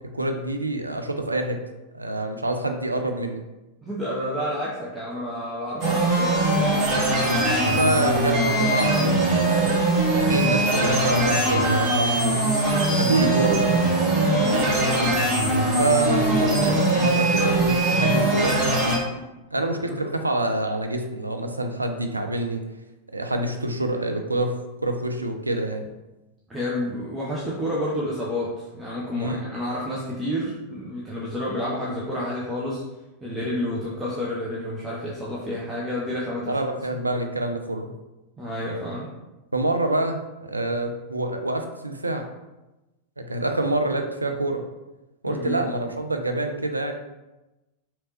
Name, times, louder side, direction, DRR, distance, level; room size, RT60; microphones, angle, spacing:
voice 1, 0.1-1.6 1.9-3.4 7.5-9.7 10.1-12.4 13.0-13.8 15.8-18.6 19.5-22.6 23.1-24.5 24.8-25.9 29.2-29.5 36.5-37.9 39.5-42.3 43.2-44.6 45.2-46.9, right 2 dB, 80° right, 5 dB, 0.3 m, -26 dB
voice 2, 3.8-6.4 6.7-7.0 12.9-13.3 14.3-15.0 19.8-20.0 26.5-32.8 33.2-36.6 38.4-39.1 45.3-45.6, left 1 dB, 10° right, -6 dB, 0.7 m, -30 dB
sound 1, 5.8-19.0, right 2 dB, 35° right, 1.1 m, -21 dB
3.2 x 2.9 x 2.9 m, 1.0 s
figure-of-eight pair, 90°, 0 cm